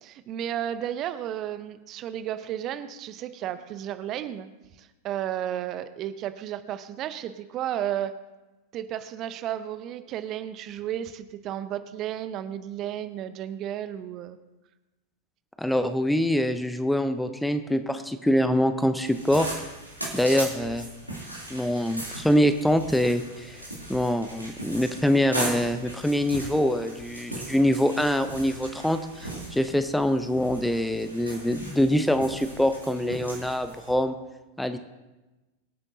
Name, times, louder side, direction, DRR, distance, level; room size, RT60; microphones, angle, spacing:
voice 1, 0.0-4.5 4.8-8.1 8.7-14.4, right 11 dB, 35° right, 12 dB, 0.7 m, -33 dB
voice 2, 15.6-19.5 20.1-20.9 21.5-34.1 34.6-34.8, equal, 5° left, 10 dB, 0.7 m, -24 dB
sound 1, 19.0-33.9, right 1 dB, 90° right, 2.9 m, -38 dB
23.5 x 8.9 x 2.7 m, 1.1 s
figure-of-eight pair, 90°, 0 cm